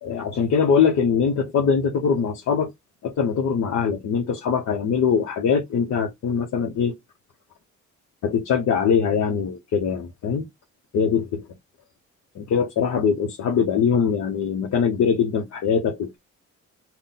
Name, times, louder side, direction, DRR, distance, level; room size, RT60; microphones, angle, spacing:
voice 1, 0.0-2.7 3.0-6.9 8.2-10.5 10.9-11.4 12.4-16.2, left 6 dB, 65° left, 0.8 m, -22 dB
4.0 x 2.2 x 3.7 m
cardioid pair, 90°, 30 cm